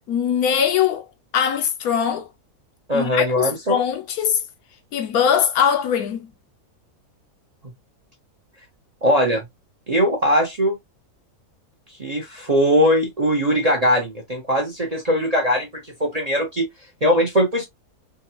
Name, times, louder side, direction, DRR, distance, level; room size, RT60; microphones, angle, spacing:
voice 1, 0.1-1.1 1.3-2.3 2.9-4.4 4.9-6.3, left 8 dB, 75° left, 1.0 m, -21 dB
voice 2, 2.9-3.8 9.0-9.4 9.9-10.8 12.0-16.7 17.0-17.7, equal, 35° right, 0.6 m, -20 dB
3.5 x 2.2 x 2.7 m
omnidirectional pair, 1.7 m